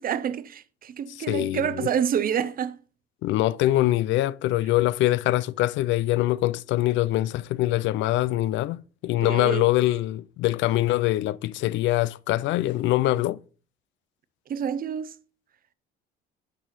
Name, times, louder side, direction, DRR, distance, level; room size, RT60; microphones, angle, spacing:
voice 1, 0.0-2.8 9.2-9.6 14.5-15.1, right 8 dB, 45° right, 0.6 m, -28 dB
voice 2, 1.3-1.9 3.2-13.4, left 16 dB, 65° left, 0.4 m, -24 dB
9.7 x 4.8 x 4.0 m
cardioid pair, 90°, 21 cm